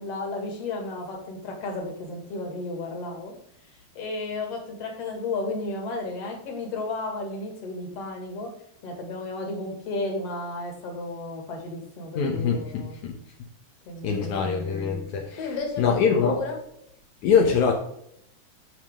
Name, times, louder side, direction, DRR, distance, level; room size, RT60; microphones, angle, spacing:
voice 1, 0.0-3.3 3.7-8.5 8.8-13.0 13.9-14.6 15.4-16.6, left 2 dB, 45° left, 2 dB, 2.7 m, -33 dB
voice 2, 12.2-13.2 14.0-16.4 17.2-17.7, left 6 dB, 70° left, 1 dB, 1.8 m, -24 dB
9.5 x 7.2 x 3.6 m, 0.72 s
omnidirectional pair, 4.7 m